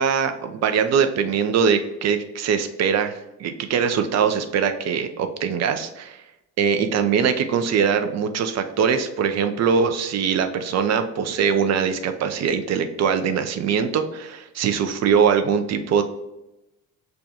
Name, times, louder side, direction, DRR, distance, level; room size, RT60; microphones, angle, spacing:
voice 1, 0.0-6.2 6.6-16.0, right 6 dB, 35° right, 8 dB, 0.5 m, -22 dB
6.6 x 2.3 x 2.6 m, 0.92 s
figure-of-eight pair, 45°, 47 cm